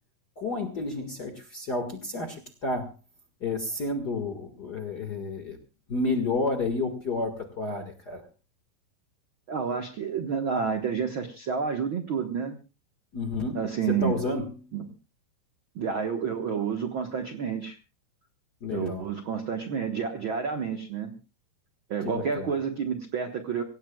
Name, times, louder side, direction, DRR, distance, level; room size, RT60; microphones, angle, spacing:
voice 1, 0.4-2.9 3.4-5.6 5.9-8.2 13.1-14.5 18.6-19.1 22.0-22.5, left 3 dB, 45° left, 5 dB, 1.4 m, -31 dB
voice 2, 9.5-12.5 13.5-14.2 14.7-14.9 15.7-17.8 18.7-21.2 21.9-23.6, right 6 dB, 90° right, 5 dB, 1.1 m, -29 dB
25.0 x 17.0 x 2.3 m, 0.32 s
omnidirectional pair, 4.4 m